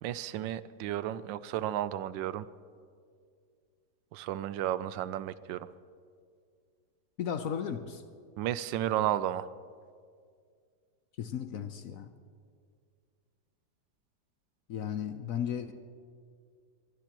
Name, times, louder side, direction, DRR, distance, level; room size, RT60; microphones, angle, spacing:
voice 1, 0.0-2.4 4.1-5.7 8.4-9.5, right 12 dB, 90° right, 16 dB, 1.3 m, -33 dB
voice 2, 7.2-8.0 11.2-12.1 14.7-15.7, left 8 dB, 60° left, 9 dB, 1.0 m, -35 dB
23.5 x 20.5 x 3.0 m, 2.2 s
omnidirectional pair, 1.9 m